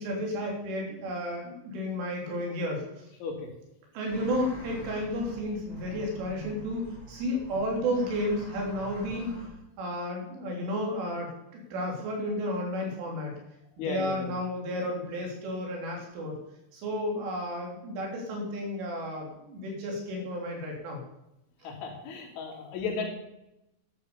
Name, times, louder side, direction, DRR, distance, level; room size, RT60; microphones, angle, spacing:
voice 1, 0.0-2.8 3.9-9.4 9.8-13.3 13.8-16.4 16.7-21.0, equal, 85° right, 0 dB, 5.9 m, -32 dB
sound 1, 4.1-9.5, right 1 dB, 5° right, 6.7 m, -46 dB
voice 2, 13.8-14.3 21.6-23.1, left 4 dB, 75° left, 1 dB, 5.1 m, -34 dB
12.0 x 10.5 x 7.0 m, 0.87 s
omnidirectional pair, 5.5 m